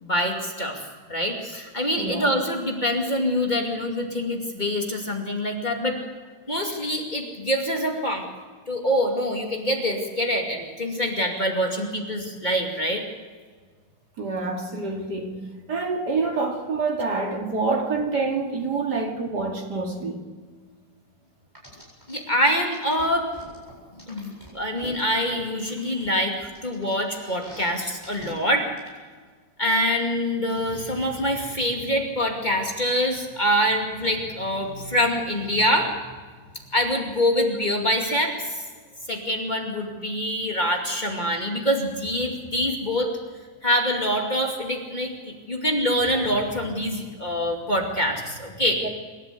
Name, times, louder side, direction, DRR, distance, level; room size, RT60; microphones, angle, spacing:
voice 1, 0.0-6.0 6.5-8.2 8.7-13.0 22.1-23.3 24.1-28.7 29.6-35.9 36.5-38.6 39.1-43.1 43.6-48.8, equal, 25° left, 2.5 m, -25 dB
voice 2, 14.2-15.4 15.7-20.2 48.8-48.9, right 3 dB, 60° right, 3.0 m, -27 dB
sound 1, 21.5-22.1 22.7-25.2 25.6-27.7 28.0-28.3 28.8-28.9, left 1 dB, 10° right, 7.7 m, -46 dB
26.0 x 13.0 x 8.4 m
omnidirectional pair, 2.0 m